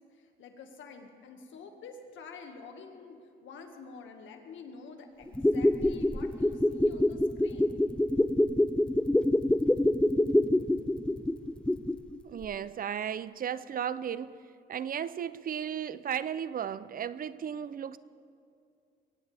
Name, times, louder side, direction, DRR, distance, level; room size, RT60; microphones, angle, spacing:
voice 1, 0.1-7.8, left 5 dB, 75° left, 1.9 m, -48 dB
sound 1, 5.3-12.1 12.4-12.5, left 1 dB, 5° left, 0.4 m, -26 dB
voice 2, 12.2-14.4 14.7-18.0, right 8 dB, 45° right, 0.5 m, -35 dB
23.0 x 17.5 x 3.4 m
cardioid pair, 90°, 20 cm